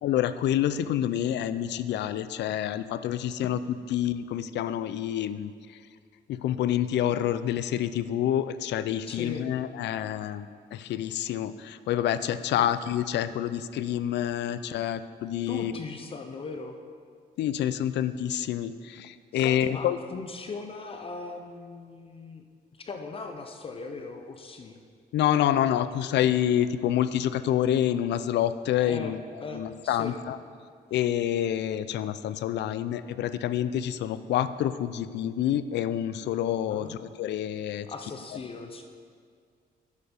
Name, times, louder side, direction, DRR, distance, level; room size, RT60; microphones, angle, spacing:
voice 1, 0.0-5.5 6.3-15.7 17.4-20.0 25.1-29.2 29.5-30.4 30.9-37.9, left 11 dB, 85° left, 13 dB, 0.4 m, -27 dB
voice 2, 9.1-9.4 12.5-12.7 15.5-16.8 19.3-22.4 22.7-24.8 28.9-30.2 36.7-37.0 37.8-38.8, left 4 dB, 30° left, 5 dB, 0.5 m, -39 dB
9.6 x 6.7 x 5.2 m, 2.1 s
cardioid pair, 170°, 17 cm